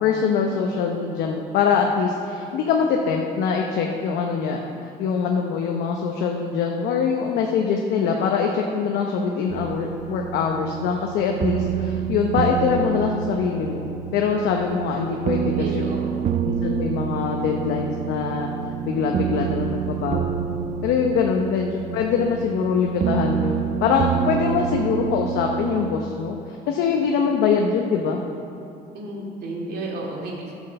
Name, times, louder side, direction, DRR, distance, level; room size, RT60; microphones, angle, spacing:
voice 1, 0.0-4.6 5.0-15.9 16.4-18.5 18.8-20.4 20.8-28.2, left 6 dB, 85° left, 1 dB, 0.8 m, -23 dB
sound 1, 9.5-25.9, right 8 dB, 45° right, 0.4 m, -28 dB
voice 2, 15.5-16.4 21.3-21.5 28.9-30.6, right 2 dB, 70° right, -2 dB, 2.5 m, -33 dB
10.5 x 6.2 x 6.8 m, 2.6 s
cardioid pair, 110°, 17 cm